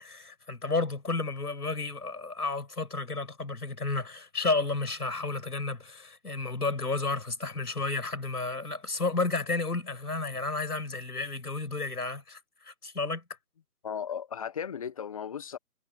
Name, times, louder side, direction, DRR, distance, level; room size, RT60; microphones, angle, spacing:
voice 1, 0.0-13.2, left 3 dB, 75° left, 7.0 m, -32 dB
voice 2, 13.8-15.6, left 8 dB, 20° left, 1.3 m, -36 dB
figure-of-eight pair, 155°, 46 cm